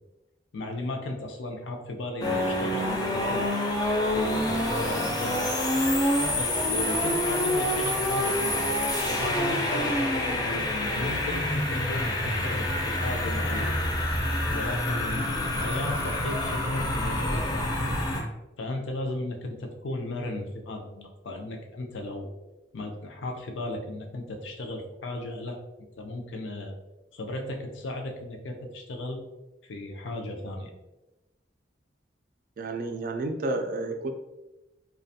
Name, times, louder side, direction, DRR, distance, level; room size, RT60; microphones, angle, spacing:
voice 1, 0.5-3.6 4.0-5.5 6.3-8.7 9.0-13.8 14.5-17.9 18.6-22.3 22.7-25.6 26.0-26.7 27.1-29.2 29.6-30.7, left 2 dB, 90° left, 3 dB, 0.5 m, -35 dB
sound 1, 2.2-18.2, left 1 dB, 20° left, 0.4 m, -27 dB
voice 2, 32.6-34.1, right 2 dB, 50° right, 5 dB, 0.3 m, -30 dB
2.4 x 2.2 x 2.6 m, 1.0 s
head